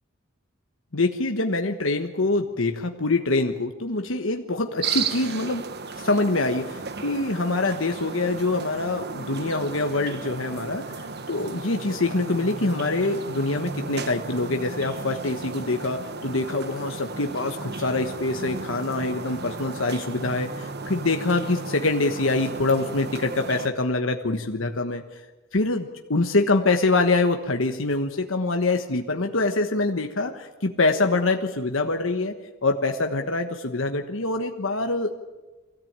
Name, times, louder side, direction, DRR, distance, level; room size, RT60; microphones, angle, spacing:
voice 1, 0.9-5.7 5.9-25.2 25.5-32.3 32.6-35.2, left 2 dB, 70° left, 5 dB, 1.3 m, -25 dB
sound 1, 4.8-23.7, right 4 dB, 55° right, 1.2 m, -35 dB
24.5 x 17.0 x 8.9 m, 1.2 s
head